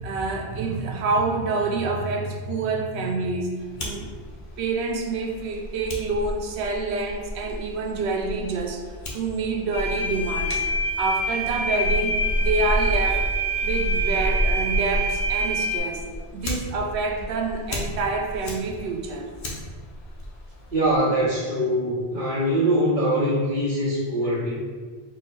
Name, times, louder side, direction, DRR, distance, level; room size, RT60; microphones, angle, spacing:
voice 1, 0.0-3.5 3.8-4.1 4.6-8.9 9.1-10.6 11.0-13.3 13.6-16.1 16.3-19.3, right 3 dB, 85° right, 2 dB, 0.9 m, -27 dB
Fire, 3.6-21.0, equal, 80° left, 1.1 m, -32 dB
sound 1, 9.7-15.8, right 2 dB, 40° left, 0.7 m, -26 dB
voice 2, 20.7-24.6, right 1 dB, 55° right, -7 dB, 0.9 m, -23 dB
4.7 x 2.1 x 4.4 m, 1.5 s
omnidirectional pair, 1.1 m